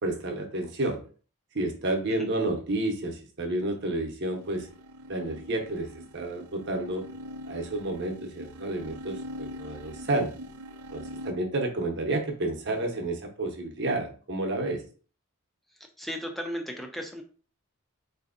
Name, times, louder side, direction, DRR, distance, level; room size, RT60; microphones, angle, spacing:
voice 1, 0.0-1.0 1.5-4.7 5.1-7.1 7.4-10.3 10.9-14.8, right 2 dB, 50° right, 3 dB, 0.7 m, -30 dB
sound 1, 4.4-11.3, left 1 dB, 80° right, 0.4 m, -43 dB
voice 2, 15.7-17.2, equal, ahead, 3 dB, 0.4 m, -36 dB
4.2 x 2.6 x 2.4 m, 0.40 s
head